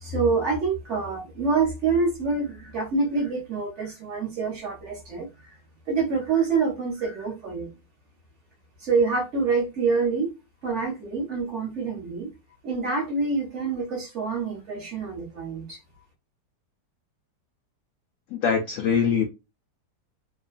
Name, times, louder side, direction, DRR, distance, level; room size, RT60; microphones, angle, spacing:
voice 1, 0.0-5.3 5.9-7.7 8.8-10.3 10.6-12.3 12.6-15.8, right 4 dB, 50° right, 1.0 m, -26 dB
voice 2, 18.3-19.3, left 6 dB, 70° left, 0.8 m, -23 dB
3.0 x 2.2 x 2.4 m
omnidirectional pair, 1.8 m